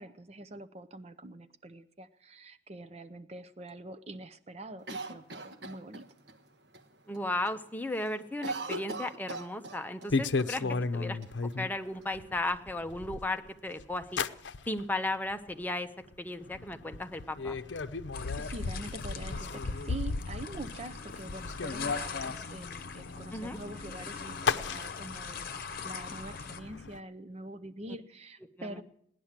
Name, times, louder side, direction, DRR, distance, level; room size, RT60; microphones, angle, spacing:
voice 1, 0.0-6.0 10.6-10.9 18.4-28.8, right 2 dB, 35° right, 12 dB, 0.6 m, -45 dB
Cough, 4.9-6.4 6.7-6.8 7.1-7.6 7.8-10.1 10.4-10.5 11.2-12.0, right 2 dB, 65° right, 1.3 m, -40 dB
voice 2, 7.1-10.6 10.9-11.2 11.6-14.2 14.7-15.9 16.2-17.6 23.3-23.6 28.6-28.8, left 2 dB, 10° left, 7 dB, 0.8 m, -35 dB
sound 1, 10.1-11.7 12.1-13.5 13.8-14.8 15.2-15.6 16.1-16.2 16.4-27.0, left 4 dB, 80° left, 0.6 m, -35 dB
sound 2, 18.1-26.6, left 5 dB, 55° left, 1.0 m, -42 dB
17.5 x 11.0 x 7.4 m, 0.71 s
head